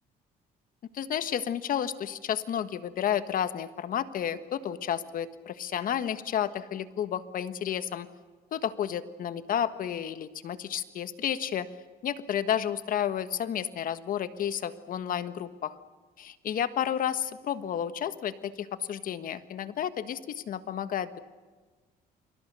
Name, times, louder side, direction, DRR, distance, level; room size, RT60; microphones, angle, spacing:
voice 1, 0.9-8.1 8.5-11.7 12.0-15.8 16.2-21.2, left 9 dB, 55° left, 12 dB, 1.5 m, -31 dB
29.0 x 23.5 x 6.8 m, 1.4 s
cardioid pair, 110°, 17 cm